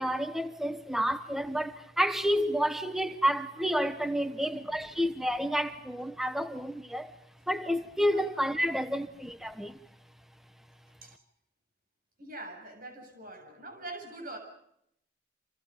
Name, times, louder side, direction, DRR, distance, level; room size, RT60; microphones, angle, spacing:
voice 1, 0.0-7.1 7.5-9.7, equal, ahead, 1.0 m, -30 dB
voice 2, 4.2-4.9 8.1-8.2 11.0-11.2 12.2-14.4, right 2 dB, 45° right, 7.2 m, -44 dB
29.5 x 28.0 x 5.2 m
head